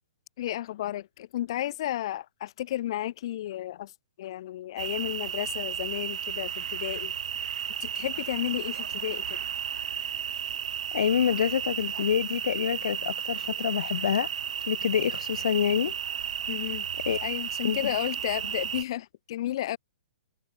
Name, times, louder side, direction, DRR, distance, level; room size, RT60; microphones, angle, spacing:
voice 1, 0.4-3.9 4.2-7.1 7.8-9.4 16.5-16.9 17.2-19.8, left 13 dB, 40° left, 1.5 m, -33 dB
sound 1, 4.8-18.8, right 8 dB, 65° right, 1.0 m, -33 dB
voice 2, 10.9-14.3 14.7-15.9 17.0-17.3 17.6-17.9, left 9 dB, 60° left, 0.9 m, -27 dB
hypercardioid pair, 170°, 4 cm